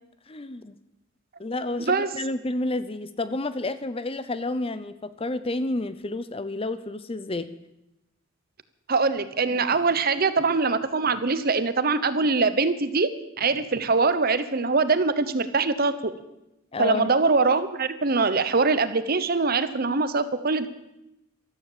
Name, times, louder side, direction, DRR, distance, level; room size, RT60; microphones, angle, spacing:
voice 1, 0.3-0.7 1.4-7.5 16.7-17.1, left 2 dB, 25° left, 13 dB, 0.7 m, -30 dB
voice 2, 1.8-2.1 8.9-13.1 13.4-16.1 16.8-20.7, right 4 dB, 45° right, 13 dB, 1.0 m, -23 dB
14.0 x 13.0 x 7.4 m, 0.89 s
head